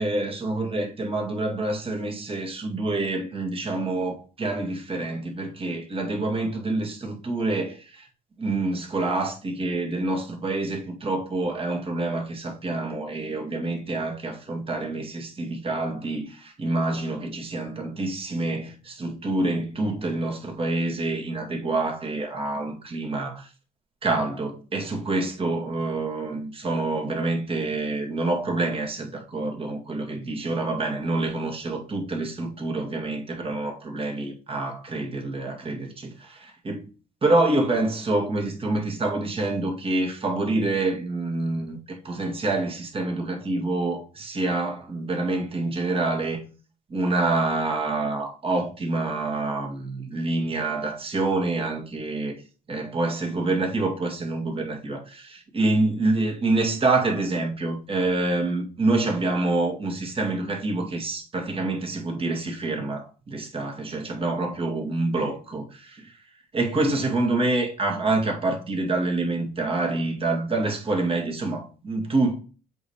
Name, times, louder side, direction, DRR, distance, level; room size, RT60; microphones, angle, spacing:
voice 1, 0.0-8.1 8.4-23.5 24.0-36.9 37.2-46.4 46.9-52.4 52.7-66.1 66.5-72.4, right 2 dB, 35° right, 2.2 m, -27 dB
7.6 x 3.4 x 4.4 m
cardioid pair, 110°, 17 cm